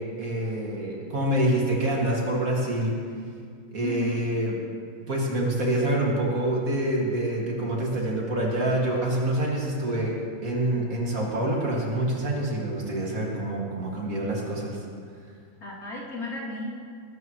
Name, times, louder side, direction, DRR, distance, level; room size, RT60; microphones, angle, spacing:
voice 1, 0.0-3.0 3.7-4.6 5.1-10.1 10.4-14.8, right 1 dB, 65° right, -2 dB, 2.7 m, -26 dB
voice 2, 3.8-4.2 15.6-16.7, left 2 dB, 70° left, -6 dB, 3.4 m, -33 dB
19.5 x 13.0 x 3.2 m, 2.2 s
omnidirectional pair, 1.6 m